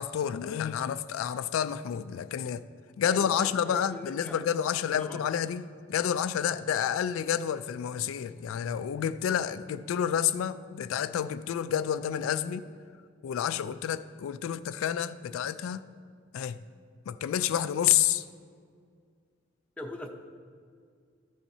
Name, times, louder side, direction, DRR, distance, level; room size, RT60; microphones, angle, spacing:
voice 1, 0.0-2.6 3.0-12.7 13.2-15.8 16.3-16.6 17.1-18.2, left 9 dB, 85° left, 0.3 m, -29 dB
voice 2, 3.0-4.4 4.7-5.2 19.8-20.1, left 1 dB, 5° left, 0.6 m, -41 dB
14.0 x 7.2 x 2.7 m
head